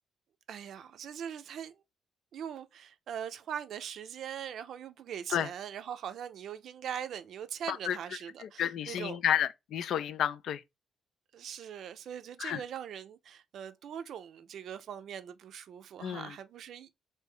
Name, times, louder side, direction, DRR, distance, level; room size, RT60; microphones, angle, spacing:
voice 1, 0.5-1.8 2.3-9.2 11.3-16.9, right 9 dB, 70° right, 0.4 m, -41 dB
voice 2, 8.4-10.6 12.4-12.6 16.0-16.3, left 10 dB, 70° left, 0.3 m, -31 dB
3.3 x 2.6 x 3.4 m
cardioid pair, 90°, 0 cm